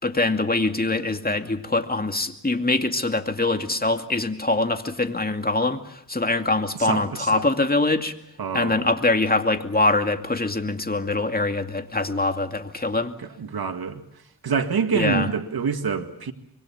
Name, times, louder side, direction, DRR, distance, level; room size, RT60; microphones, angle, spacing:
voice 1, 0.0-8.1 8.5-13.1 14.9-15.3, left 2 dB, 25° left, 2.4 m, -23 dB
voice 2, 6.8-7.4 8.4-8.8 13.4-14.0 14.4-16.3, right 6 dB, 85° right, 2.0 m, -26 dB
26.0 x 23.0 x 7.3 m
cardioid pair, 55°, 36 cm